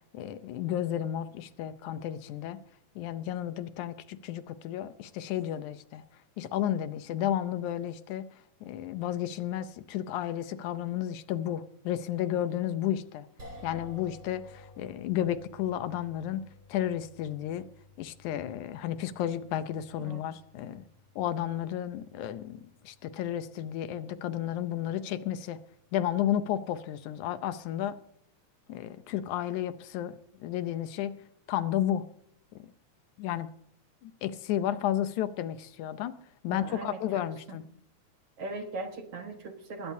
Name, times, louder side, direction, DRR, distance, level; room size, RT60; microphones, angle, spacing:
voice 1, 0.1-2.6 3.0-6.0 6.4-8.3 8.6-13.3 13.6-16.4 16.7-17.7 18.0-20.8 21.2-25.6 25.9-28.0 28.7-31.2 31.5-32.1 32.6-32.7 33.2-33.5 34.0-36.1 36.4-37.6, left 11 dB, 80° left, 2.1 m, -32 dB
sound 1, 13.4-25.7, left 2 dB, 35° right, 4.1 m, -54 dB
voice 2, 36.5-37.6 38.4-39.9, right 3 dB, 55° right, 2.2 m, -40 dB
20.5 x 16.5 x 2.7 m
omnidirectional pair, 3.6 m